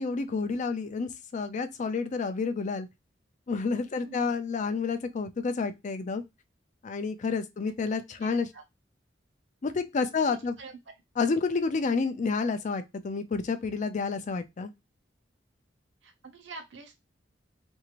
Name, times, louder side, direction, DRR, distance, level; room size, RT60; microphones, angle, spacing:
voice 1, 0.0-2.9 3.5-6.2 6.8-8.5 9.6-10.5 11.2-14.7, left 4 dB, 40° left, 0.4 m, -29 dB
voice 2, 8.2-8.6 10.2-10.8 16.0-17.0, right 3 dB, 75° right, 0.8 m, -46 dB
2.6 x 2.4 x 2.9 m
head